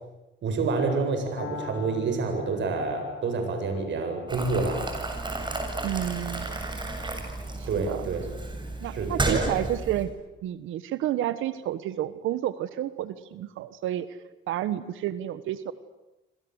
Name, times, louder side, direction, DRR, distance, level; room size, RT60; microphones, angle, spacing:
voice 1, 0.4-4.9 7.7-8.3 8.8-9.5, right 4 dB, 65° right, 5 dB, 7.9 m, -28 dB
Piano, 1.4-9.3, left 6 dB, 75° left, 5.1 m, -46 dB
Boiling, 4.3-10.1, right 2 dB, 25° right, 7.6 m, -32 dB
voice 2, 5.8-6.5 7.6-8.1 8.8-10.1 10.4-14.2 14.5-15.7, right 12 dB, 85° right, 14 dB, 1.4 m, -30 dB
27.0 x 26.0 x 8.1 m, 0.99 s
cardioid pair, 90°, 20 cm